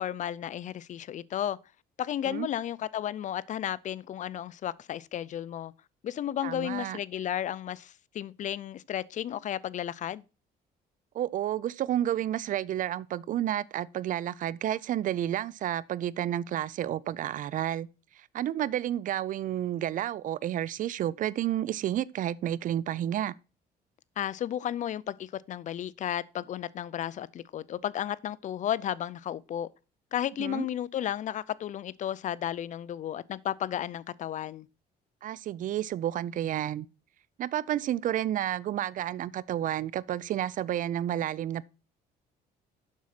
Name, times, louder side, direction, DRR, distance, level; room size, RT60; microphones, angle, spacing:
voice 1, 0.0-1.6 2.0-5.7 6.0-10.2 24.2-29.7 30.1-34.7, left 10 dB, 45° left, 0.5 m, -33 dB
voice 2, 6.4-7.0 11.1-17.9 18.3-23.3 30.4-30.7 35.2-36.9 37.4-41.7, right 11 dB, 50° right, 0.4 m, -31 dB
7.3 x 6.3 x 5.7 m
cardioid pair, 110°, 17 cm